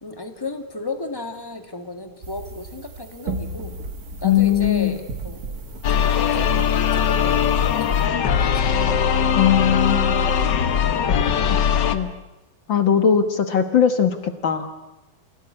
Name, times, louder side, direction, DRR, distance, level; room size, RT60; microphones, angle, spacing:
voice 1, 0.0-3.8 4.2-5.6 5.9-7.5 7.8-8.7, left 3 dB, 10° left, 7 dB, 1.1 m, -34 dB
sound 1, 2.2-8.1, right 3 dB, 40° right, 1.3 m, -36 dB
voice 2, 4.2-4.9 9.4-10.2 11.5-11.6 11.9-12.1 12.7-14.2 14.4-14.7, left 8 dB, 55° left, 9 dB, 1.5 m, -19 dB
sound 2, 5.8-11.9, left 7 dB, 85° left, 0.9 m, -20 dB
27.5 x 17.0 x 9.8 m, 1.0 s
omnidirectional pair, 3.7 m